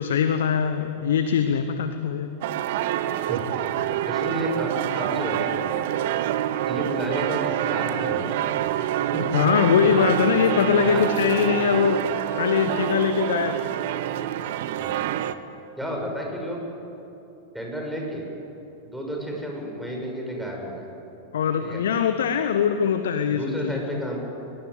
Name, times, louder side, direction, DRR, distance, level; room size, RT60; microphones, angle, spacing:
voice 1, 0.0-2.3 9.3-13.6 21.3-24.0, left 7 dB, 60° left, 9 dB, 1.2 m, -22 dB
sound 1, 2.4-15.3, right 12 dB, 55° right, 1.0 m, -26 dB
voice 2, 3.2-3.7 4.1-5.5 6.6-8.4 9.1-10.1 10.8-11.0 14.8-15.1 15.8-16.6 17.5-18.2 18.8-20.9 21.6-21.8 23.3-24.2, equal, ahead, -1 dB, 6.7 m, -31 dB
22.5 x 20.5 x 9.6 m, 2.9 s
figure-of-eight pair, 90°, 0 cm